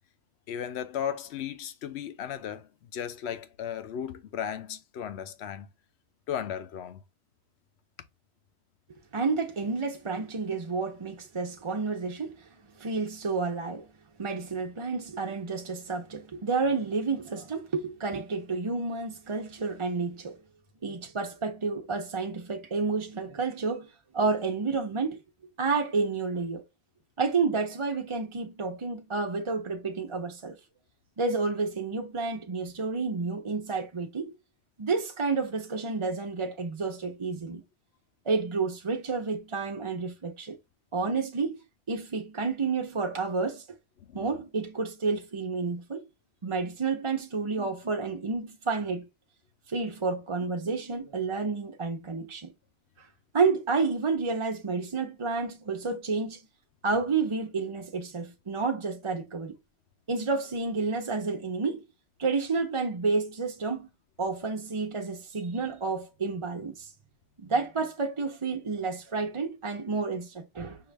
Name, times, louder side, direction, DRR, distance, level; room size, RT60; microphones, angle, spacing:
voice 1, 0.5-5.7 6.3-7.0 44.1-44.3 47.6-47.7, left 9 dB, 80° left, 0.9 m, -35 dB
voice 2, 9.1-12.5 12.8-13.9 14.2-20.4 20.8-25.2 25.6-26.6 27.2-30.6 31.2-34.3 34.8-37.6 38.3-40.6 40.9-41.6 41.9-43.6 44.1-46.1 46.4-49.1 49.7-52.5 53.0-53.1 53.3-56.4 56.8-59.6 60.1-61.8 62.2-63.9 64.2-66.9 67.4-70.8, right 4 dB, 35° right, 0.6 m, -30 dB
5.7 x 2.5 x 3.3 m
omnidirectional pair, 1.1 m